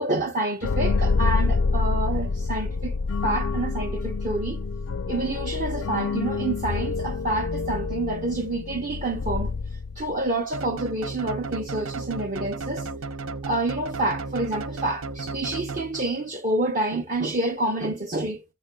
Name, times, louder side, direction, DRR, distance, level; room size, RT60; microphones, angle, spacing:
voice 1, 0.0-2.9 3.2-4.6 5.1-9.5 10.0-12.9 13.4-18.4, right 2 dB, 40° right, 0.9 m, -28 dB
sound 1, 0.6-10.3, left 4 dB, 70° left, 0.4 m, -27 dB
sound 2, 10.5-16.3, right 3 dB, 85° right, 0.7 m, -34 dB
10.0 x 6.8 x 2.3 m
head